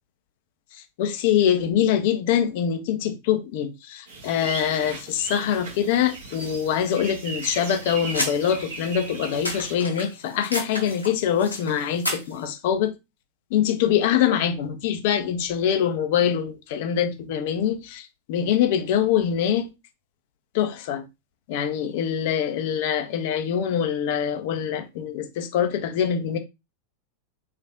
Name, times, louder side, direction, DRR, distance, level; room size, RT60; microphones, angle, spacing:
voice 1, 1.0-12.9 13.5-19.7 20.5-21.0 21.5-26.4, left 9 dB, 50° left, 0.7 m, -24 dB
sound 1, 4.1-9.8, right 3 dB, 60° right, 1.4 m, -37 dB
sound 2, 7.3-12.4, left 1 dB, 80° left, 1.0 m, -33 dB
3.4 x 3.2 x 2.5 m
figure-of-eight pair, 90°, 0 cm